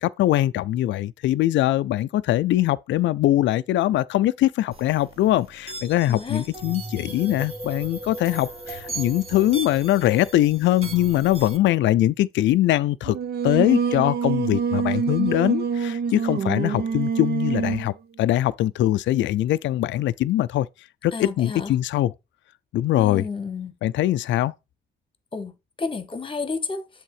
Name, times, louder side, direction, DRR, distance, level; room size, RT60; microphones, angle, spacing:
voice 1, 0.0-13.2 13.4-22.1 22.7-23.3 23.8-24.5, left 14 dB, 70° left, 0.4 m, -22 dB
sound 1, 4.7-11.6, right 2 dB, 30° right, 1.5 m, -37 dB
voice 2, 6.1-6.4 21.1-21.7 23.0-23.7 25.3-25.5 25.8-26.9, left 4 dB, 25° left, 1.2 m, -31 dB
Singing, 13.1-17.9, right 6 dB, 55° right, 0.7 m, -25 dB
7.4 x 3.6 x 4.9 m
cardioid pair, 90°, 20 cm